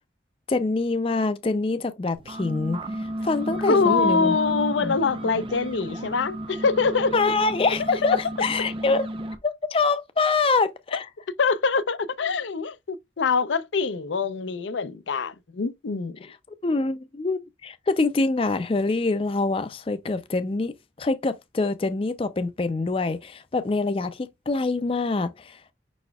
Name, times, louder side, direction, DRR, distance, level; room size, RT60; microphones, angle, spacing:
voice 1, 0.5-4.3 4.8-4.9 7.1-9.1 9.4-11.1 16.6-25.6, left 3 dB, 30° left, 0.4 m, -25 dB
sound 1, 2.1-9.4, right 1 dB, 30° right, 0.6 m, -33 dB
voice 2, 3.7-7.1 10.9-11.0 11.4-16.2, left 4 dB, 85° left, 0.5 m, -24 dB
5.6 x 4.1 x 2.2 m
head